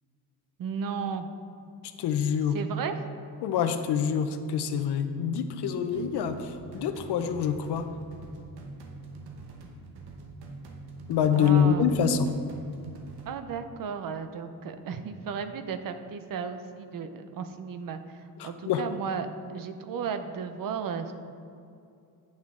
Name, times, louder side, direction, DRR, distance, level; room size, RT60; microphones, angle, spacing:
voice 1, 0.6-1.3 2.5-2.9 11.3-11.9 13.3-21.1, right 6 dB, 60° right, 9 dB, 0.6 m, -34 dB
voice 2, 2.0-2.6 3.4-7.9 11.1-12.3 18.4-18.8, left 7 dB, 85° left, 8 dB, 0.6 m, -26 dB
sound 1, 5.9-13.3, right 3 dB, 75° right, 1.0 m, -44 dB
8.7 x 5.9 x 3.7 m, 2.6 s
wide cardioid pair, 140°, 39 cm